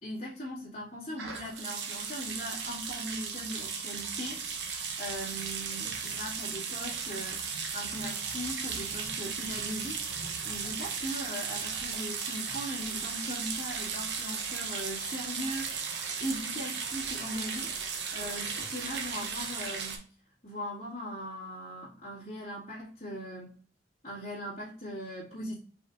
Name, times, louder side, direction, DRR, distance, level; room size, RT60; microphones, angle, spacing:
voice 1, 0.0-20.1 20.4-23.6 24.0-25.6, equal, 40° left, -10 dB, 2.1 m, -40 dB
sound 1, 1.2-20.0, right 6 dB, 75° right, 0.9 m, -36 dB
5.1 x 3.7 x 2.5 m, 0.43 s
head